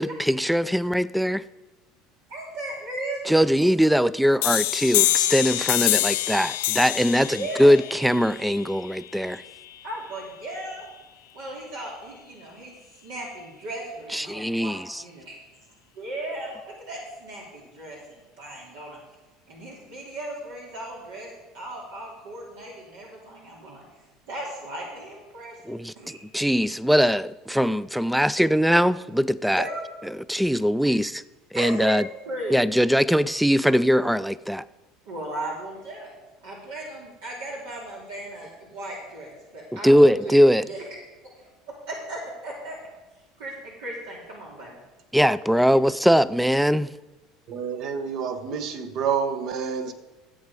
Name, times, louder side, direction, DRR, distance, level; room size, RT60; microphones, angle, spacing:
voice 1, 0.0-1.4 3.3-9.4 14.1-15.0 25.7-29.7 30.3-31.2 31.5-32.0 32.5-34.6 39.8-40.6 45.1-46.9, equal, ahead, 0.4 m, -21 dB
voice 2, 2.3-3.2 7.3-7.7 9.8-10.9 11.3-15.4 15.9-19.0 19.5-21.3 21.5-23.8 24.3-26.2 29.4-29.8 31.5-31.9 32.2-32.6 35.1-36.1 36.4-40.4 40.6-40.8 41.4-42.8 43.4-44.8, right 1 dB, 80° right, 2.8 m, -36 dB
sound 1, 4.4-9.8, left 17 dB, 80° left, 0.5 m, -26 dB
voice 3, 47.5-49.9, right 7 dB, 60° right, 1.2 m, -28 dB
14.0 x 8.0 x 4.9 m
hypercardioid pair, 85°, 0 cm